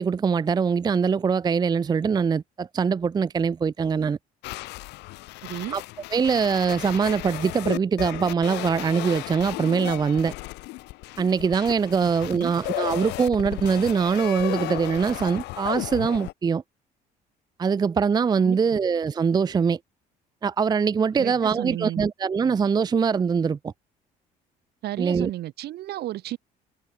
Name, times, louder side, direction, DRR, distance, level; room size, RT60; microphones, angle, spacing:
voice 1, 0.0-4.2 5.7-5.8 6.1-10.3 11.2-16.6 17.6-19.8 20.4-23.7 25.0-25.3, right 6 dB, 25° right, 0.5 m, -23 dB
sound 1, 4.4-16.3, left 20 dB, 90° left, 1.3 m, -34 dB
voice 2, 5.4-5.8 12.0-12.5 18.4-18.6 21.2-22.1 24.8-26.4, right 14 dB, 70° right, 4.2 m, -33 dB
cardioid pair, 110°, 17 cm